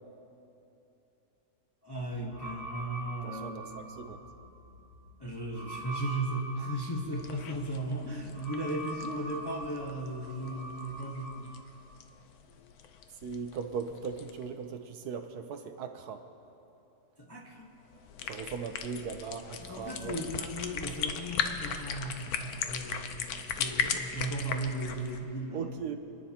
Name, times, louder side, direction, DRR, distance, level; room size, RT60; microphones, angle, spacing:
voice 1, 1.8-3.7 5.2-11.5 17.2-17.7 19.6-25.7, right 1 dB, 20° left, -2 dB, 0.9 m, -36 dB
sound 1, 2.3-11.4, right 1 dB, 35° left, 1.6 m, -44 dB
voice 2, 3.2-4.2 13.2-16.2 18.3-20.2 25.5-26.0, right 6 dB, 70° right, 7 dB, 1.2 m, -38 dB
sound 2, 7.2-14.5 17.9-25.2, left 7 dB, 65° left, 1.1 m, -38 dB
28.5 x 9.9 x 2.9 m, 2.9 s
omnidirectional pair, 1.8 m